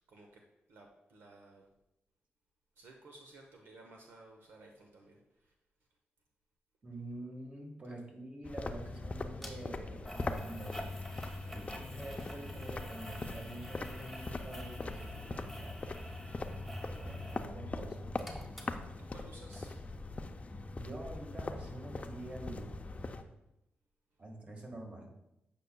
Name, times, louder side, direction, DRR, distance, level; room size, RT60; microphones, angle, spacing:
voice 1, 0.1-0.4 0.7-1.7 2.8-5.5 16.5-16.7 19.0-20.6, right 2 dB, 75° right, 1 dB, 0.7 m, -57 dB
voice 2, 6.8-10.8 11.5-15.8 17.0-18.1 20.7-22.8 24.2-25.1, right 1 dB, 35° right, 1 dB, 1.5 m, -46 dB
sound 1, 8.4-23.2, left 2 dB, 35° left, 0.5 m, -41 dB
sound 2, 9.4-9.5 10.0-17.5 17.8-19.2 19.5-19.6, equal, ahead, 1.3 m, -49 dB
8.2 x 5.2 x 2.2 m, 0.89 s
cardioid pair, 65°, 4 cm